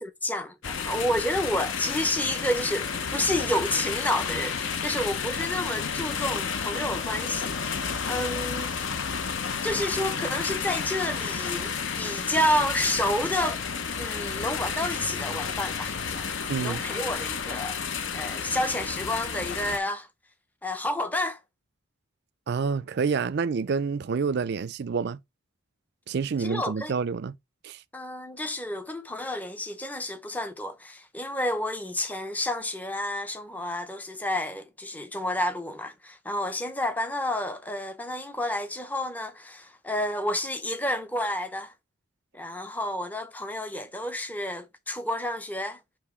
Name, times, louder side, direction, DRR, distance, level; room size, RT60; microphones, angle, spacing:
voice 1, 0.0-8.9 9.6-13.6 14.0-17.8 18.1-20.1 20.6-21.4 26.4-26.9 27.9-41.7 42.3-45.8, left 1 dB, 10° left, 0.6 m, -30 dB
sound 1, 0.6-19.8, left 6 dB, 60° left, 0.7 m, -31 dB
voice 2, 16.5-16.8 22.5-25.2 26.1-27.4 27.6-27.8, right 5 dB, 50° right, 0.4 m, -28 dB
6.8 x 3.1 x 4.8 m
head